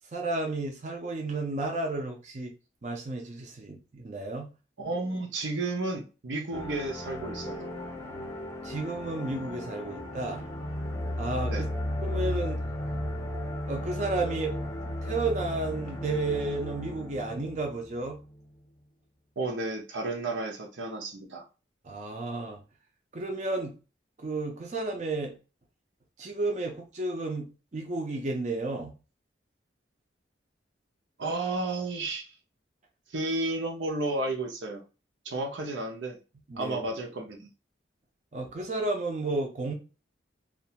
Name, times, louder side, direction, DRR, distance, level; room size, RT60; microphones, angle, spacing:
voice 1, 0.1-2.5 2.8-4.5 8.6-10.5 11.2-11.7 12.0-12.6 13.7-14.6 15.0-18.2 21.8-22.6 23.1-23.7 24.2-25.4 26.2-28.9 36.5-36.8 38.3-39.7, right 2 dB, 40° right, 0.5 m, -32 dB
voice 2, 4.8-7.7 11.5-11.7 19.4-21.4 31.2-32.3 33.1-34.8 35.2-36.2 36.5-37.5, right 2 dB, 85° right, 0.7 m, -32 dB
sound 1, 6.5-18.4, left 1 dB, 15° left, 0.5 m, -35 dB
2.5 x 2.2 x 2.8 m
head